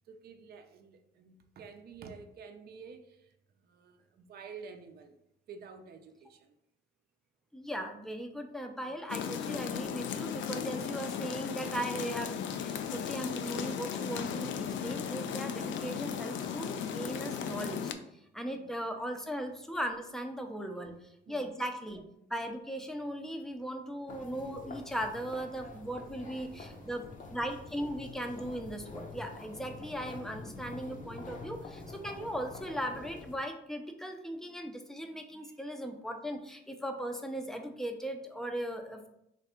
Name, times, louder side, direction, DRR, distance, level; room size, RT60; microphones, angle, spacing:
voice 1, 0.1-3.3 3.6-5.1 5.5-6.5 8.7-8.9 18.5-18.7 20.7-20.9 21.3-21.5 26.4-27.0 35.4-35.6, right 5 dB, 50° right, 6 dB, 0.5 m, -50 dB
voice 2, 7.5-17.9 18.3-20.9 21.3-22.0 22.3-27.0 27.3-39.1, right 1 dB, ahead, 4 dB, 0.5 m, -38 dB
sound 1, 9.1-17.9, left 7 dB, 70° left, 0.4 m, -36 dB
sound 2, 24.1-33.4, left 3 dB, 40° left, 0.7 m, -47 dB
3.2 x 2.5 x 4.3 m, 0.78 s
cardioid pair, 90°, 20 cm